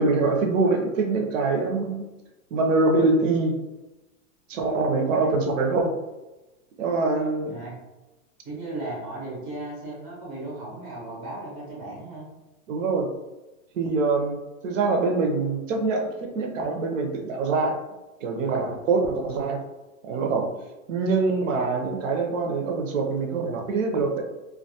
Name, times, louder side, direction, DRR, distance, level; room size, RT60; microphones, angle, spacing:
voice 1, 0.0-2.0 2.5-3.6 4.5-5.9 6.8-7.6 12.7-13.1 13.7-17.8 18.2-19.6 20.1-20.6 20.9-24.2, right 3 dB, 65° right, 2 dB, 0.5 m, -24 dB
voice 2, 8.4-12.3, right 2 dB, 15° right, -6 dB, 0.4 m, -36 dB
2.2 x 2.2 x 2.7 m, 1.1 s
supercardioid pair, 160°, 42 cm